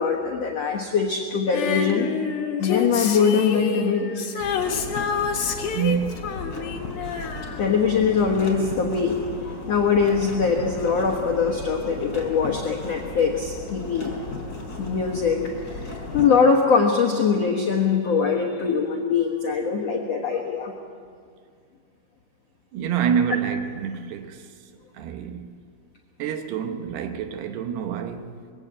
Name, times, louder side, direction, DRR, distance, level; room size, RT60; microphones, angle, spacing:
voice 1, 0.0-2.1 2.6-4.2 7.6-14.1 14.8-20.7, left 5 dB, 85° left, 1.4 m, -22 dB
Female singing, 1.5-8.1 8.4-8.5, left 6 dB, 55° left, 2.2 m, -28 dB
sound 1, 4.4-16.3, left 2 dB, 20° left, 3.9 m, -36 dB
voice 2, 5.7-6.3 22.7-24.5 25.0-25.6 26.2-28.3, right 8 dB, 75° right, 2.7 m, -27 dB
21.5 x 16.5 x 8.4 m
omnidirectional pair, 5.3 m